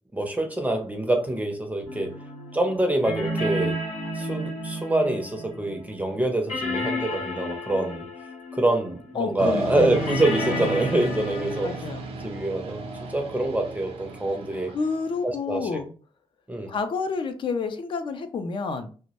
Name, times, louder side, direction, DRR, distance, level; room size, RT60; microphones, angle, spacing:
voice 1, 0.1-2.1 2.5-3.8 4.2-8.0 8.5-11.7 12.2-12.9 13.1-14.7 15.2-15.7 16.5-16.7, right 1 dB, 15° right, 4 dB, 0.5 m, -25 dB
sound 1, 1.9-6.2 6.5-9.3 9.8-11.8, left 1 dB, 85° left, 0.8 m, -32 dB
voice 2, 9.1-10.2 10.5-10.7 11.6-12.1 14.7-15.9 16.7-18.9, left 4 dB, 50° left, 8 dB, 0.4 m, -29 dB
sound 2, 9.4-15.2, right 2 dB, 65° right, 0.5 m, -35 dB
2.1 x 2.0 x 2.8 m, 0.39 s
cardioid pair, 75°, 11 cm